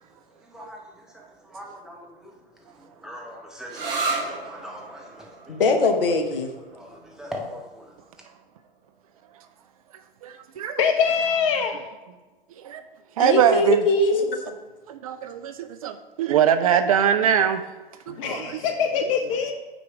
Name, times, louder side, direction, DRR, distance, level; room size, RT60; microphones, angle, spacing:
voice 1, 0.4-2.4 2.7-5.6 6.6-8.0, equal, ahead, -1 dB, 0.8 m, -41 dB
sound 1, 3.7-11.1, right 3 dB, 70° right, 1.2 m, -36 dB
voice 2, 5.5-6.5 13.2-14.5, left 3 dB, 65° left, 6 dB, 0.9 m, -22 dB
voice 3, 10.2-10.8 12.6-12.8 13.2-13.9 14.9-17.6 18.1-18.6 19.0-19.1, right 9 dB, 40° right, 9 dB, 0.4 m, -22 dB
voice 4, 10.8-11.8 18.2-19.5, left 6 dB, 35° left, 5 dB, 0.5 m, -23 dB
8.9 x 3.0 x 4.6 m, 1.2 s
figure-of-eight pair, 105°, 30 cm